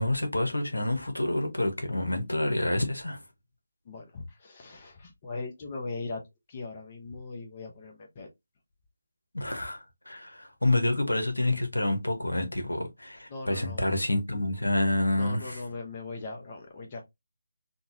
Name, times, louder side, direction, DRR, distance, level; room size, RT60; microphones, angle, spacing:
voice 1, 0.0-3.2 9.3-15.6, left 1 dB, 85° left, 1.0 m, -28 dB
voice 2, 3.9-6.2 6.5-8.3 13.3-13.9 15.1-17.0, left 3 dB, 30° left, 0.8 m, -39 dB
3.8 x 2.3 x 2.6 m
figure-of-eight pair, 155°, 0 cm